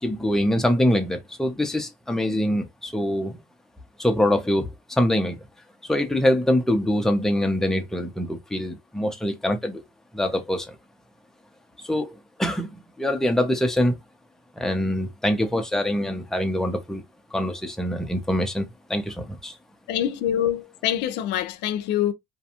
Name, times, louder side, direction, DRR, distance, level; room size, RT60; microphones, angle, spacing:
voice 1, 0.0-3.4 4.0-5.4 5.9-9.8 10.1-10.8 11.8-14.0 14.6-17.0 17.3-19.6, left 1 dB, 5° left, 0.5 m, -24 dB
voice 2, 19.9-22.1, left 11 dB, 85° left, 0.4 m, -25 dB
2.5 x 2.2 x 2.8 m
cardioid pair, 110°, 17 cm